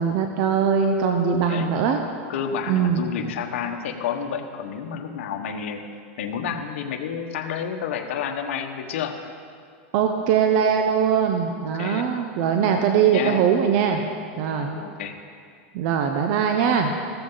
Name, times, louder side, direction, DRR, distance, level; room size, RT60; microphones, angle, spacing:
voice 1, 0.0-2.0 2.7-3.1 9.9-14.0 14.4-14.7 15.7-16.9, right 7 dB, 55° right, 5 dB, 1.0 m, -21 dB
voice 2, 1.4-1.8 2.3-5.8 6.2-9.2 11.6-12.1 13.1-13.4 14.7-15.2, left 7 dB, 75° left, 4 dB, 1.4 m, -30 dB
15.5 x 13.5 x 4.0 m, 2.2 s
supercardioid pair, 135°, 7 cm